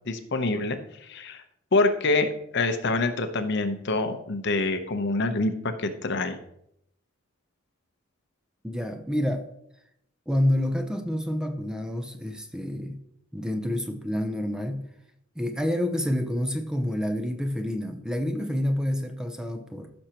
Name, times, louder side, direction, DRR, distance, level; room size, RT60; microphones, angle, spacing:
voice 1, 0.1-1.4 1.7-6.4, left 2 dB, 55° left, 8 dB, 0.8 m, -26 dB
voice 2, 8.6-9.5 10.3-13.0 13.3-14.9 15.4-19.9, left 1 dB, 5° right, 6 dB, 0.6 m, -28 dB
15.0 x 6.4 x 2.9 m, 0.75 s
head